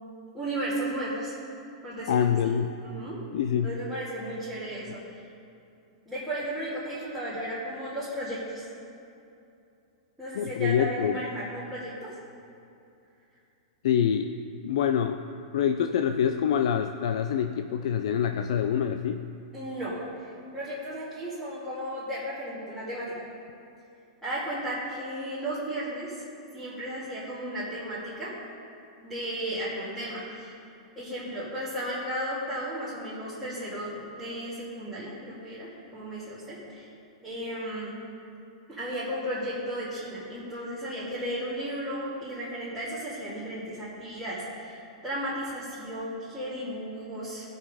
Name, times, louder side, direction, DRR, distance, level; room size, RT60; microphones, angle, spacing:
voice 1, 0.3-1.3 1.8-2.2 2.8-3.2 3.6-5.0 6.1-8.7 10.2-12.1 19.5-23.1 24.2-26.2 26.5-28.3 29.0-30.6 30.9-36.9 37.2-38.0 38.7-47.5, equal, ahead, -15 dB, 2.4 m, -34 dB
voice 2, 2.1-2.7 3.3-3.7 10.3-11.2 13.8-14.3 14.6-15.3 15.5-19.3, left 8 dB, 65° left, 8 dB, 0.4 m, -26 dB
16.0 x 5.5 x 5.0 m, 2.6 s
supercardioid pair, 165°, 3 cm